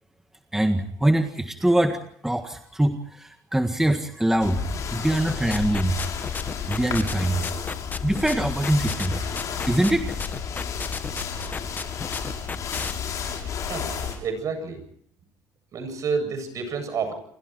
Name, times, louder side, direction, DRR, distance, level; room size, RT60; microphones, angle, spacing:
voice 1, 0.5-4.6 4.9-6.0 6.7-7.5 8.0-9.3 9.7-10.1, right 1 dB, 5° right, 6 dB, 1.7 m, -23 dB
sound 1, 4.4-14.1, left 6 dB, 50° left, 7.1 m, -31 dB
sound 2, 5.3-12.9, left 4 dB, 25° left, 1.4 m, -33 dB
voice 2, 13.7-14.8 15.7-17.1, right 5 dB, 50° right, 9 dB, 7.8 m, -29 dB
28.5 x 24.0 x 4.6 m, 0.62 s
cardioid pair, 110°, 7 cm